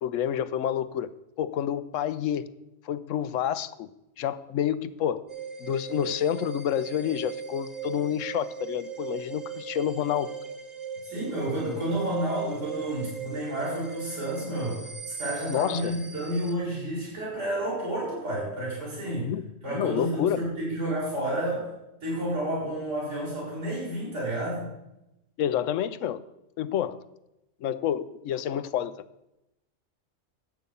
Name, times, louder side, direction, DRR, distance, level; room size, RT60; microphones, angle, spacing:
voice 1, 0.0-1.1 1.4-2.5 2.8-3.9 4.2-5.2 5.6-10.3 15.5-15.9 19.2-20.4 25.4-26.2 26.6-27.0 27.6-29.0, left 10 dB, 85° left, 15 dB, 1.0 m, -28 dB
sound 1, 5.3-16.5, right 6 dB, 35° right, 1.1 m, -39 dB
voice 2, 11.0-19.3 19.6-21.7 22.0-24.7, right 1 dB, 70° right, -6 dB, 4.9 m, -30 dB
10.5 x 8.5 x 5.5 m, 0.90 s
omnidirectional pair, 1.3 m